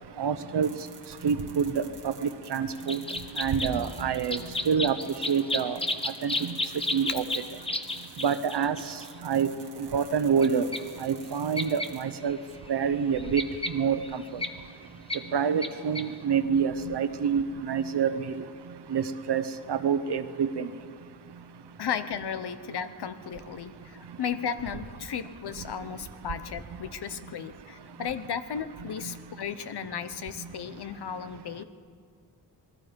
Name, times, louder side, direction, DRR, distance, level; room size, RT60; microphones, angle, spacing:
voice 1, 0.2-0.8 1.2-3.0 3.4-4.4 4.7-5.0 5.3-5.8 6.2-6.5 6.9-7.2 8.2-8.8 9.2-9.5 9.8-10.7 11.0-12.4 12.7-13.4 13.7-14.2 15.3-18.3 18.9-19.4 19.7-20.7, right 7 dB, 90° right, 11 dB, 1.1 m, -27 dB
sound 1, 0.6-12.0, right 5 dB, 50° right, 2.5 m, -51 dB
sound 2, 2.9-9.1 10.4-10.5 10.7-10.8 11.6-11.9 12.3-12.4 12.7-14.5 15.1-15.2 15.6-15.7 15.9-16.1, left 2 dB, 15° left, 1.0 m, -32 dB
voice 2, 21.8-31.6, left 7 dB, 75° left, 11 dB, 1.0 m, -35 dB
27.0 x 20.5 x 5.3 m, 2.1 s
wide cardioid pair, 170°, 39 cm